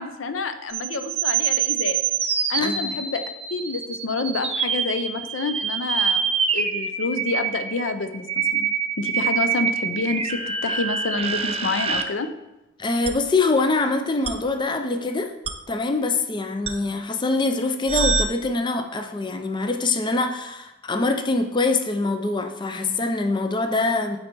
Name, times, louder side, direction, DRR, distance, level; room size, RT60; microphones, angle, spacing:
voice 1, 0.0-2.0 2.5-3.2 3.5-8.7 9.0-12.3, left 3 dB, 70° left, 9 dB, 0.5 m, -28 dB
sound 1, 0.7-12.0 13.0-13.1 14.2-14.3 15.4-15.5 16.7-16.8 17.9-18.2, right 6 dB, 30° right, 0.5 m, -25 dB
voice 2, 2.6-3.0 12.8-15.3 15.7-24.2, left 3 dB, 25° left, 6 dB, 0.5 m, -24 dB
8.5 x 4.1 x 4.5 m, 0.97 s
head